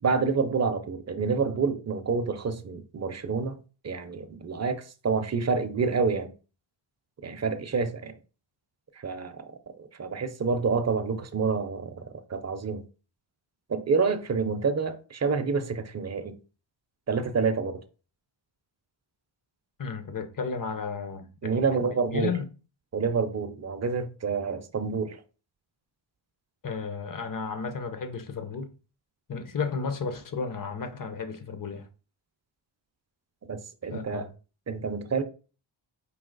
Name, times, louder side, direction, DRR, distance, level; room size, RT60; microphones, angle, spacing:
voice 1, 0.0-3.6 3.8-6.3 7.2-8.1 9.0-9.4 9.8-12.0 12.3-12.8 13.7-16.4 17.1-17.8 21.4-22.3 22.9-25.2 33.5-34.3 34.7-35.2, right 5 dB, 35° right, 0.6 m, -28 dB
voice 2, 19.8-21.8 22.1-22.5 26.6-28.7 29.3-31.9 33.9-34.3, left 5 dB, 40° left, 0.8 m, -33 dB
4.8 x 2.8 x 3.9 m
wide cardioid pair, 105°, 49 cm